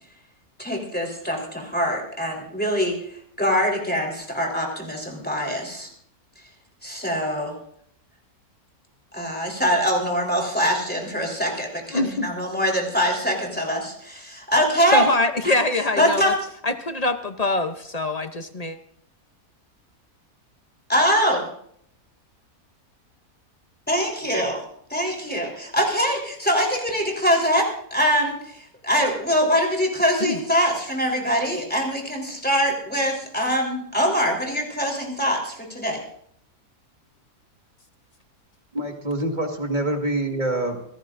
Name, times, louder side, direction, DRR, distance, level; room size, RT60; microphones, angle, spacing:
voice 1, 0.6-5.9 6.8-7.5 9.1-15.1 15.4-15.6 16.0-16.3 20.9-21.5 23.9-24.6 24.9-36.0, equal, 5° left, -1 dB, 3.8 m, -23 dB
voice 2, 11.9-12.3 14.9-16.3 16.6-18.8 30.2-30.4, left 2 dB, 35° left, 8 dB, 0.6 m, -24 dB
voice 3, 38.7-40.9, right 1 dB, 30° right, 3 dB, 1.9 m, -26 dB
24.5 x 17.0 x 2.6 m, 0.67 s
omnidirectional pair, 1.6 m